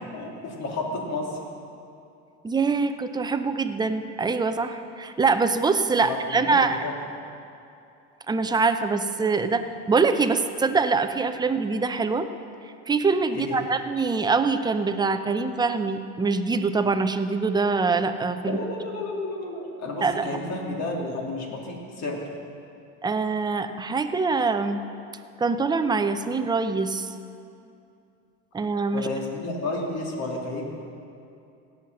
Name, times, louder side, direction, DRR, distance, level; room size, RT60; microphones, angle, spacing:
voice 1, 0.1-1.4 6.0-6.2 6.4-6.9 13.3-13.7 18.4-22.2 28.9-30.7, left 2 dB, 45° left, -1 dB, 2.6 m, -31 dB
voice 2, 2.4-6.9 8.3-12.3 12.9-18.6 20.0-20.3 23.0-24.8 25.4-27.1 28.5-29.1, right 4 dB, 10° right, 9 dB, 0.5 m, -24 dB
17.0 x 5.8 x 6.4 m, 2.6 s
supercardioid pair, 110°, 35 cm